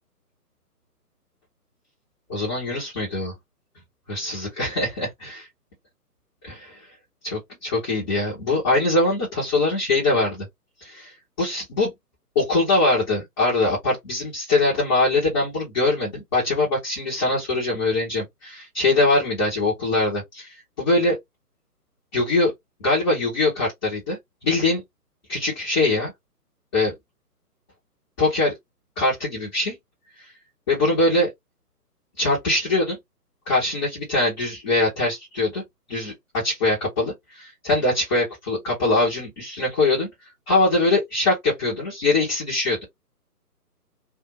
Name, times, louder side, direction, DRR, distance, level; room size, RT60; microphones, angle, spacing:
voice 1, 2.3-3.3 4.1-5.5 6.4-6.8 7.2-10.4 10.8-11.1 11.4-11.9 12.3-21.2 22.1-22.5 22.8-24.8 25.3-26.1 26.7-26.9 28.2-28.5 29.0-29.7 30.7-31.3 32.2-33.0 33.5-35.6 35.9-40.1 40.5-42.8, left 2 dB, 15° left, 1.3 m, -22 dB
2.6 x 2.6 x 3.1 m
figure-of-eight pair, 150°, 48 cm